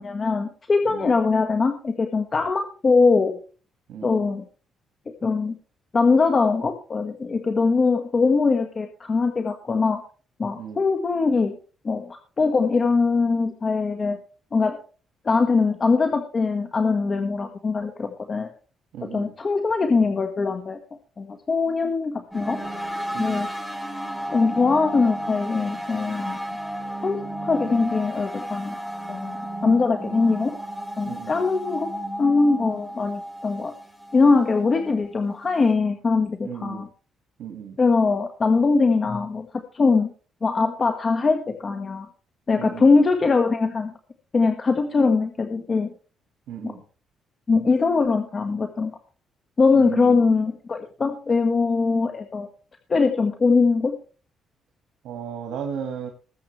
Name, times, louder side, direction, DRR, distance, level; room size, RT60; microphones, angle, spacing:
voice 1, 0.0-3.4 4.0-4.5 5.2-5.5 5.9-10.0 10.4-11.6 11.8-14.2 14.5-14.8 15.2-18.5 19.1-20.8 21.2-22.6 23.2-23.5 24.3-26.4 27.0-28.7 29.1-29.4 29.6-30.6 31.0-31.9 32.2-33.7 34.1-36.9 37.8-39.5 39.7-40.1 40.4-42.1 42.5-43.9 44.3-45.9 46.6-46.7 47.5-48.9 49.6-52.5 52.9-54.0, left 4 dB, 35° left, 5 dB, 1.6 m, -22 dB
voice 2, 3.9-4.2 10.6-10.9 18.9-19.3 23.1-23.5 31.0-31.4 36.4-36.9 37.4-37.8 42.6-42.9 46.5-46.8 49.8-50.3 55.0-56.1, right 8 dB, 80° right, 4 dB, 1.9 m, -35 dB
sound 1, 22.3-35.7, equal, 5° left, 3.0 m, -33 dB
20.5 x 7.9 x 3.3 m, 0.37 s
cardioid pair, 90°, 0 cm